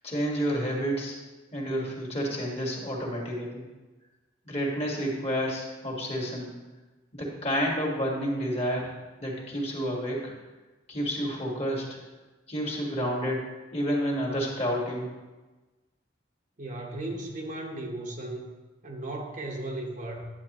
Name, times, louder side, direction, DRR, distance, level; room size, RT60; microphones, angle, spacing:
voice 1, 0.0-1.2 1.5-3.6 4.5-6.5 7.1-8.9 9.2-10.3 10.9-12.0 12.5-13.5 13.7-15.1, equal, 35° left, -1 dB, 1.7 m, -30 dB
voice 2, 16.6-18.5 18.8-20.3, right 1 dB, 45° right, 1 dB, 1.0 m, -36 dB
9.9 x 8.1 x 3.0 m, 1.2 s
head